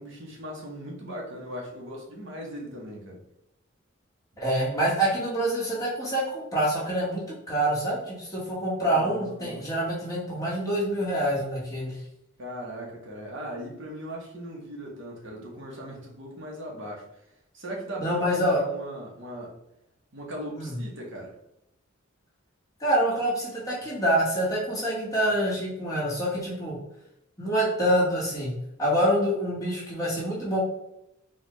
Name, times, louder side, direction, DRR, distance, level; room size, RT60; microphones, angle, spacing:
voice 1, 0.0-3.2 8.8-9.7 12.4-17.1 17.5-19.6 20.1-21.3, equal, 65° right, -2 dB, 0.9 m, -38 dB
voice 2, 4.4-12.0 18.0-18.6 20.6-20.8 22.8-26.8 27.4-28.5 28.8-30.6, right 1 dB, 15° left, -7 dB, 1.3 m, -26 dB
4.3 x 2.4 x 3.0 m, 0.84 s
head